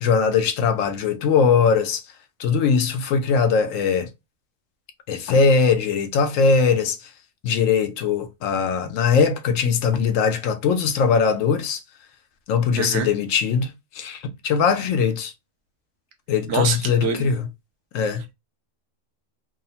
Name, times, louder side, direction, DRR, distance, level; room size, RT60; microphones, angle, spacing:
voice 1, 0.0-2.0 2.4-4.1 5.1-7.1 7.4-11.8 12.5-15.3 16.3-17.5 17.9-18.2, left 5 dB, 80° left, 1.0 m, -20 dB
voice 2, 12.8-13.1 16.5-17.3, right 5 dB, 70° right, 1.0 m, -25 dB
3.0 x 2.0 x 2.7 m
omnidirectional pair, 1.3 m